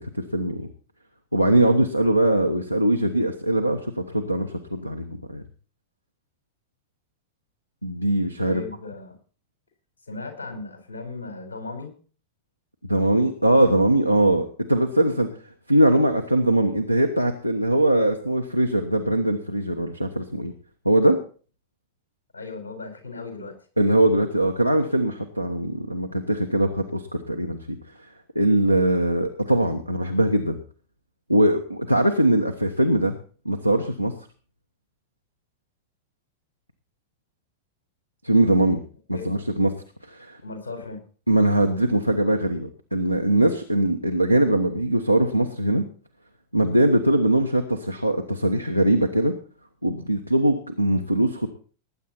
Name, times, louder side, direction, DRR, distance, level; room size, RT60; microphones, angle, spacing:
voice 1, 0.1-0.7 1.3-5.4 7.8-8.6 12.9-15.3 15.7-20.5 20.8-21.2 23.8-27.8 28.3-30.6 31.3-33.1 33.4-34.1 38.2-38.8 39.1-39.7 40.1-40.4 41.3-45.9 46.5-49.3 49.8-51.5, right 1 dB, 90° left, 9 dB, 1.2 m, -21 dB
voice 2, 8.5-9.2 10.1-11.9 22.3-23.5 38.7-38.8 39.1-39.3 40.4-41.0, left 3 dB, 70° left, 5 dB, 4.9 m, -36 dB
19.5 x 9.3 x 4.4 m, 0.40 s
figure-of-eight pair, 90°, 0 cm